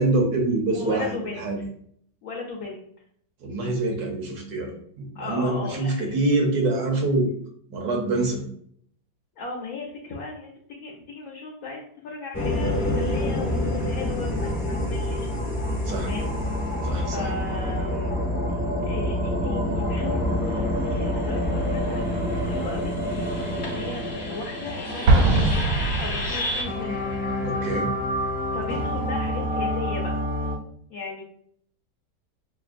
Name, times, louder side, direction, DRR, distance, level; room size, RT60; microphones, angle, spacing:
voice 1, 0.0-1.1 1.4-1.6 3.4-4.7 5.0-7.3 7.7-8.4 15.9-16.1 16.8-17.3 27.4-27.9, right 2 dB, 65° right, 2 dB, 1.3 m, -25 dB
voice 2, 0.7-1.7 2.2-2.8 5.1-6.1 9.4-15.3 16.1-16.3 17.1-18.1 18.9-25.6 26.0-27.0 28.5-30.1 30.9-31.2, left 3 dB, 65° left, -2 dB, 1.0 m, -36 dB
sound 1, 12.3-30.6, left 1 dB, 35° left, 0.9 m, -27 dB
Explosion, 25.1-26.8, right 2 dB, 80° right, 0.6 m, -21 dB
6.1 x 2.1 x 2.5 m, 0.64 s
omnidirectional pair, 1.9 m